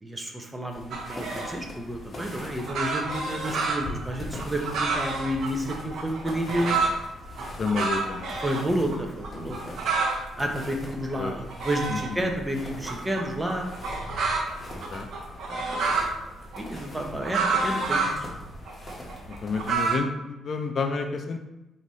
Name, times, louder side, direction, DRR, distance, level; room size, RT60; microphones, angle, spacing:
voice 1, 0.0-6.8 8.4-9.7 10.4-13.7 15.5-18.3, equal, 15° right, 2 dB, 0.7 m, -31 dB
sound 1, 0.7-20.0, left 1 dB, 30° left, 1.2 m, -42 dB
sound 2, 0.9-1.6 2.4-7.0 7.4-8.6 8.9-9.0 9.2-10.2 10.6-12.3 12.9-16.1 16.5-18.2 18.7-20.0, right 4 dB, 65° right, 0.8 m, -29 dB
voice 2, 7.6-8.3 11.2-11.3 11.9-12.0 14.9-15.1 19.4-21.4, left 4 dB, 50° left, 5 dB, 0.4 m, -29 dB
5.0 x 2.8 x 3.1 m, 0.96 s
cardioid pair, 90°, 0 cm